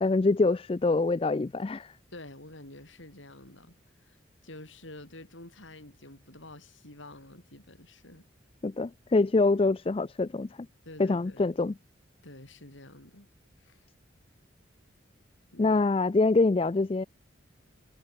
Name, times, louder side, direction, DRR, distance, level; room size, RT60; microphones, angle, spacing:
voice 1, 0.0-1.9 8.6-10.5 11.0-11.7 15.6-17.0, left 3 dB, 30° left, 0.4 m, -25 dB
voice 2, 2.1-8.3 10.8-11.5 12.2-13.3 13.6-13.8 15.5-15.8, left 1 dB, 80° left, 6.7 m, -49 dB
head